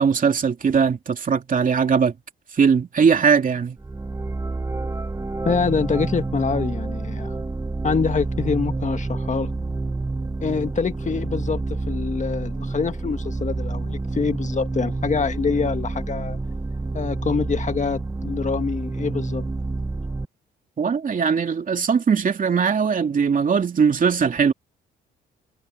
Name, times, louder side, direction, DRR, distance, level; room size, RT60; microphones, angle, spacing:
voice 1, 0.0-2.1 2.5-3.8 20.8-24.5, right 6 dB, 45° right, 2.8 m, -20 dB
sound 1, 3.8-20.2, right 3 dB, 15° right, 1.0 m, -28 dB
voice 2, 5.5-7.3 7.8-9.5 10.4-16.4 16.9-19.4, left 5 dB, 35° left, 1.7 m, -25 dB
cardioid pair, 90°, 20 cm